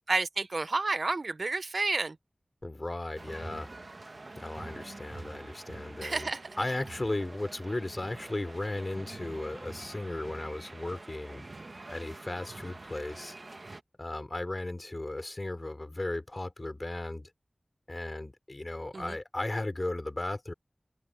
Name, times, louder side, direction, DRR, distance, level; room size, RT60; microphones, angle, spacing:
voice 1, 0.1-2.2 6.0-6.4 18.9-19.2, right 3 dB, 80° right, 0.8 m, -30 dB
voice 2, 2.6-3.7 4.4-11.5 11.9-13.4 14.0-17.3 17.9-20.5, left 2 dB, 45° left, 3.4 m, -36 dB
sound 1, 3.2-13.8, right 2 dB, 65° right, 1.2 m, -46 dB
wide cardioid pair, 45°, 0 cm